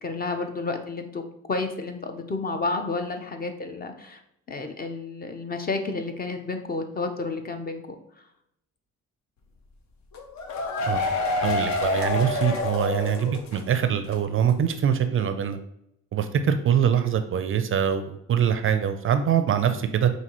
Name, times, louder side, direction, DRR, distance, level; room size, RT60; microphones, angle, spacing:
voice 1, 0.0-1.2 1.5-4.2 4.5-7.8, left 3 dB, 30° left, 6 dB, 0.6 m, -31 dB
sound 1, 10.1-13.8 14.1-14.2 14.5-14.6, left 3 dB, 65° left, 0.7 m, -27 dB
voice 2, 11.4-15.6 16.1-20.1, right 8 dB, 45° right, 9 dB, 0.4 m, -23 dB
5.3 x 2.6 x 3.0 m, 0.77 s
cardioid pair, 90°, 30 cm